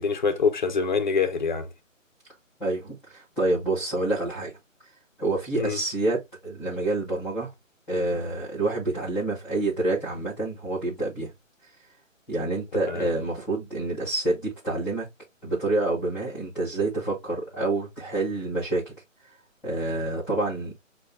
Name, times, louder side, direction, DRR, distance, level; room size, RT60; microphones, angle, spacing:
voice 1, 0.0-1.7 5.5-5.8 12.9-13.1, left 5 dB, 35° left, 0.6 m, -25 dB
voice 2, 2.6-4.5 5.2-7.5 7.9-11.3 12.3-15.1 15.4-18.9 19.6-20.7, right 2 dB, ahead, 0.9 m, -27 dB
6.5 x 2.3 x 2.4 m
hypercardioid pair, 160°, 40 cm